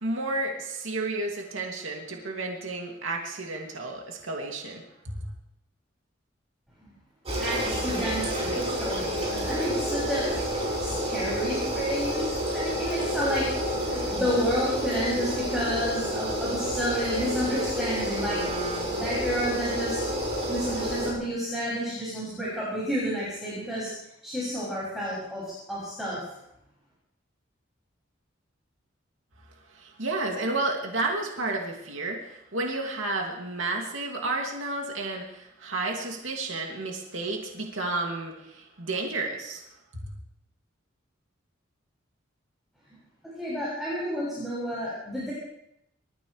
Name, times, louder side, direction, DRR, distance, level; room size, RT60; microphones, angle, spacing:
voice 1, 0.0-5.3 29.7-39.6, right 2 dB, 90° right, 0 dB, 2.7 m, -31 dB
sound 1, 7.3-21.1, equal, 30° right, 5.9 m, -29 dB
voice 2, 7.4-10.2 10.6-13.5 13.8-18.4 18.9-20.0 20.5-23.9 24.2-26.2 43.4-45.3, equal, ahead, -9 dB, 7.0 m, -30 dB
27.5 x 14.5 x 3.4 m, 0.80 s
head